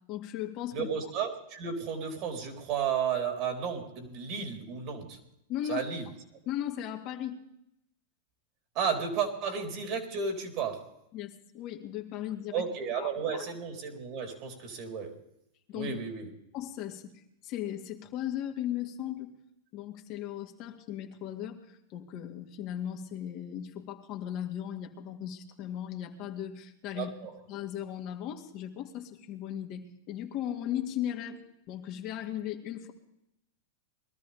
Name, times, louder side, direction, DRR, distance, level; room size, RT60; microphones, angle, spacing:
voice 1, 0.1-0.9 5.5-5.9 6.5-7.4 11.1-12.6 13.0-13.4 15.7-15.9 16.5-17.0 17.4-19.3 19.7-27.1 27.5-31.4 31.7-32.9, left 11 dB, 45° left, 3 dB, 2.0 m, -37 dB
voice 2, 0.7-5.2 5.7-6.1 8.7-10.9 12.5-15.2 15.7-16.3 26.9-27.3, right 6 dB, 50° right, 3 dB, 3.9 m, -33 dB
21.5 x 13.0 x 3.5 m, 0.82 s
hypercardioid pair, 110°, 0 cm